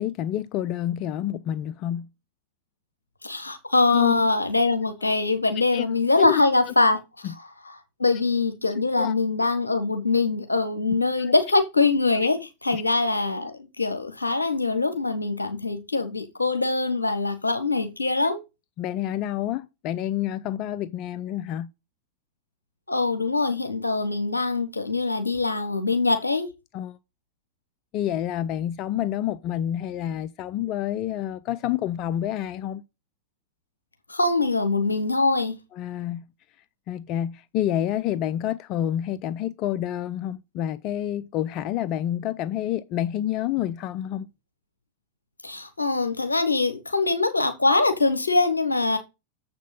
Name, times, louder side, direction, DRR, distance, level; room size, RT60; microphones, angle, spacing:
voice 1, 0.0-2.1 3.9-4.3 5.7-5.9 6.2-6.7 7.2-7.3 9.0-9.1 11.2-11.3 12.7-12.8 18.8-21.7 26.7-27.0 27.9-32.8 35.7-36.2 36.9-44.3, left 11 dB, 40° left, 0.5 m, -28 dB
voice 2, 3.2-7.0 8.0-12.4 12.6-18.4 22.9-26.5 34.1-35.6 45.4-49.0, left 3 dB, 80° left, 1.4 m, -23 dB
7.3 x 6.1 x 5.4 m
figure-of-eight pair, 90°, 0 cm